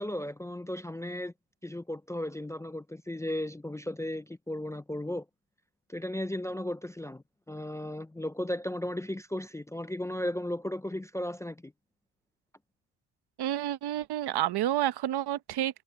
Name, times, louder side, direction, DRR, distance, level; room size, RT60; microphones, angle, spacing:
voice 1, 0.0-1.3 1.6-5.3 5.9-11.7, left 1 dB, 10° left, 0.4 m, -35 dB
voice 2, 13.4-15.8, right 12 dB, 75° right, 1.1 m, -29 dB
cardioid pair, 105°, 39 cm